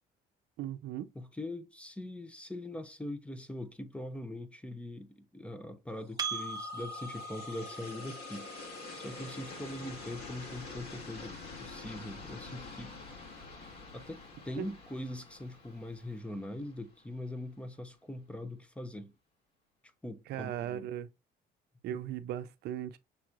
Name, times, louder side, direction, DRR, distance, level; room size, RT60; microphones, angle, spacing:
voice 1, 0.6-1.1 14.6-14.7 20.3-21.1 21.8-23.0, right 11 dB, 70° right, 0.6 m, -37 dB
voice 2, 1.1-13.0 13.9-19.1 20.0-20.9, left 1 dB, 5° left, 0.8 m, -42 dB
sound 1, 6.1-17.1, left 3 dB, 65° left, 2.4 m, -47 dB
Percussion, 6.2-11.0, right 3 dB, 25° right, 0.7 m, -42 dB
6.8 x 3.0 x 2.4 m
cardioid pair, 110°, 17 cm